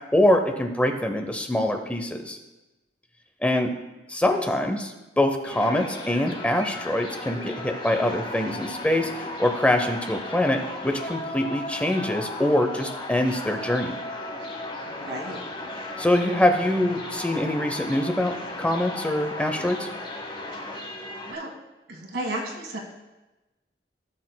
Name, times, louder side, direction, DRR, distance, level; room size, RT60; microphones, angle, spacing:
voice 1, 0.1-2.4 3.4-3.7 4.1-14.0 16.0-19.9, left 1 dB, 10° left, 5 dB, 0.6 m, -24 dB
sound 1, 5.4-21.3, left 2 dB, 30° left, 1.0 m, -36 dB
voice 2, 14.8-15.4 21.3-21.5 21.9-22.8, right 1 dB, 85° right, 2 dB, 1.7 m, -33 dB
16.0 x 6.5 x 2.2 m, 1.1 s
head